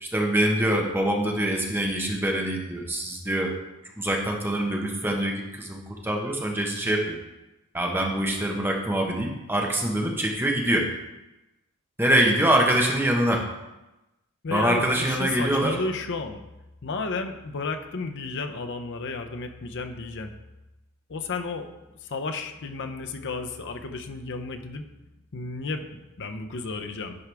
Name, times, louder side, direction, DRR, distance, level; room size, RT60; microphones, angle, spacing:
voice 1, 0.0-3.5 4.0-7.2 7.7-10.9 12.0-13.4 14.5-15.8, right 1 dB, 10° right, 0 dB, 1.0 m, -24 dB
voice 2, 14.4-16.4 16.8-20.3 21.1-21.7 22.0-24.9 25.3-27.3, left 3 dB, 55° left, 6 dB, 0.6 m, -33 dB
10.5 x 4.6 x 3.4 m, 0.99 s
head